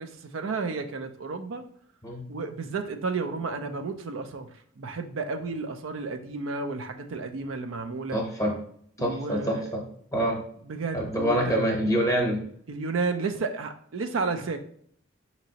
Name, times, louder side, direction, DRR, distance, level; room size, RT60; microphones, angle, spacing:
voice 1, 0.0-1.7 2.3-4.5 4.8-8.2 9.0-9.7 10.7-11.6 12.7-14.6, right 4 dB, 75° right, 7 dB, 0.4 m, -32 dB
voice 2, 8.1-8.5 9.0-9.8 10.1-10.4 10.9-12.4, equal, 15° left, 1 dB, 0.8 m, -26 dB
5.1 x 2.8 x 2.8 m, 0.63 s
head